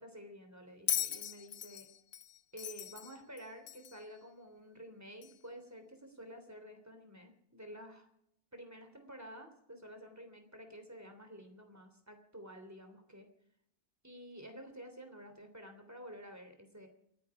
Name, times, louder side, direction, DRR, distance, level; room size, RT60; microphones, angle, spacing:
voice 1, 0.0-1.9 2.5-8.1 8.5-13.3 14.0-16.9, equal, 10° right, 6 dB, 3.1 m, -51 dB
Bell, 0.9-4.1 5.2-5.3, left 10 dB, 80° left, 1.5 m, -38 dB
29.0 x 9.6 x 4.9 m, 0.74 s
omnidirectional pair, 1.6 m